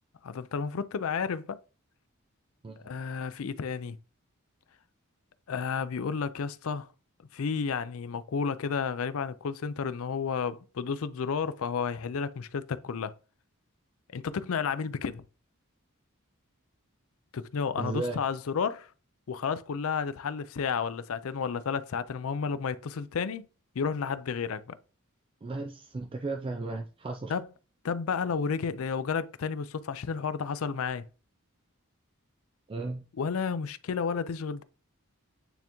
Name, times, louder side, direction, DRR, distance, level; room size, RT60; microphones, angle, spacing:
voice 1, 0.2-1.6 2.8-4.0 5.5-6.9 7.3-13.1 14.1-15.2 17.3-18.9 19.3-23.4 23.8-24.8 27.3-27.5 27.8-31.1 33.2-34.6, left 6 dB, 80° left, 0.5 m, -31 dB
voice 2, 17.8-18.2 25.4-27.3 32.7-33.0, right 3 dB, 25° right, 0.4 m, -35 dB
9.0 x 3.5 x 3.0 m
head